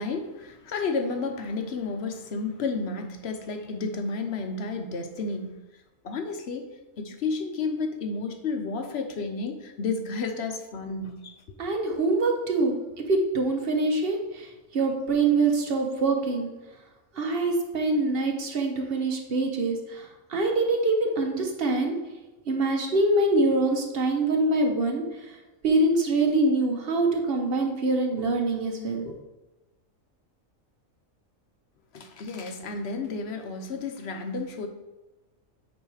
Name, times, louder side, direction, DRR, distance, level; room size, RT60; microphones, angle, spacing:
voice 1, 0.0-5.6 6.0-6.7 7.0-11.3 31.9-34.7, left 4 dB, 60° left, 6 dB, 0.9 m, -31 dB
voice 2, 11.6-12.8 13.1-16.5 17.1-21.9 22.5-25.4 25.6-29.1, right 2 dB, 50° right, 2 dB, 1.1 m, -24 dB
8.6 x 3.1 x 4.8 m, 1.1 s
omnidirectional pair, 1.4 m